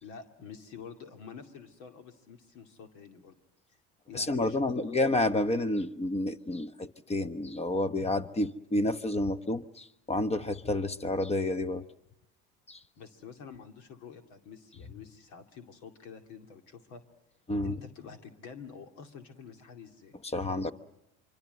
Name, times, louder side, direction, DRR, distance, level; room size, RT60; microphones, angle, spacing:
voice 1, 0.0-3.4 4.1-5.0 13.0-17.0 17.6-20.2 20.6-20.7, left 6 dB, 75° left, 6 dB, 2.5 m, -48 dB
voice 2, 4.1-11.8 12.7-12.8 17.5-17.8 20.3-20.7, left 2 dB, 20° left, 13 dB, 1.1 m, -30 dB
25.0 x 25.0 x 7.9 m, 0.85 s
supercardioid pair, 90°, 30 cm